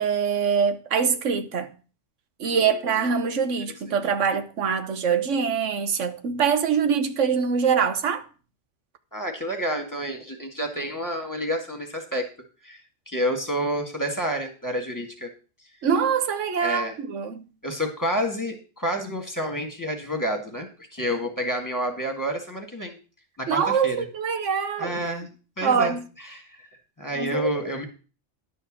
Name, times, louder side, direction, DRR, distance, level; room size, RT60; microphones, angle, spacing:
voice 1, 0.0-1.7 2.4-8.3 15.8-17.4 23.5-25.0 25.6-26.0 27.2-27.5, right 6 dB, 85° right, 1.3 m, -24 dB
voice 2, 2.4-3.0 9.1-12.3 12.6-15.3 16.6-17.0 17.6-23.0 23.4-24.0 24.8-25.3 25.6-26.7 27.0-27.9, equal, 15° left, 1.8 m, -29 dB
11.0 x 4.5 x 7.4 m
omnidirectional pair, 1.2 m